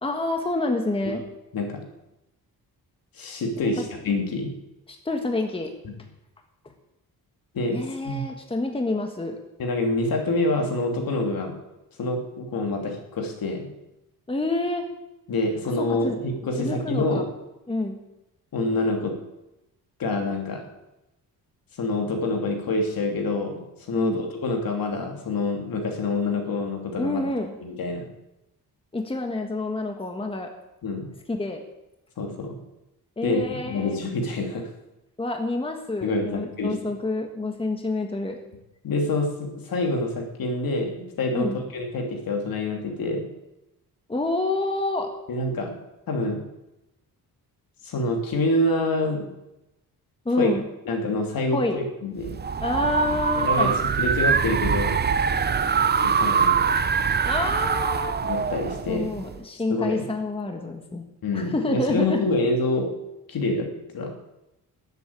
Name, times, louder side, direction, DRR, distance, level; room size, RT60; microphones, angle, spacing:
voice 1, 0.0-1.2 3.6-3.8 4.9-5.7 7.7-9.4 14.3-14.8 15.8-16.2 16.6-17.2 17.7-18.0 23.9-24.2 27.0-27.5 28.9-30.5 31.3-31.6 33.2-34.0 35.2-38.4 41.3-41.6 44.1-45.1 50.2-50.6 51.5-51.8 52.6-53.7 57.2-58.2 58.9-61.0 61.3-62.3, left 2 dB, 15° left, 4 dB, 1.5 m, -28 dB
voice 2, 3.2-4.5 5.8-5.9 7.5-8.3 9.6-11.6 12.0-13.7 15.3-17.3 18.5-19.1 20.0-20.6 21.8-27.2 27.6-28.1 30.8-31.1 32.2-32.5 33.2-34.7 36.0-36.7 38.8-43.3 45.3-45.7 46.1-46.4 47.8-49.3 50.4-50.5 50.8-52.3 53.4-53.7 54.0-55.0 55.9-56.8 58.2-59.2 59.7-60.1 61.2-62.9 63.3-63.7 63.9-64.1, left 2 dB, 65° left, 2 dB, 2.9 m, -26 dB
sound 1, 52.2-59.4, right 6 dB, 25° right, 0.6 m, -23 dB
13.0 x 8.2 x 8.7 m, 0.93 s
cardioid pair, 115°, 38 cm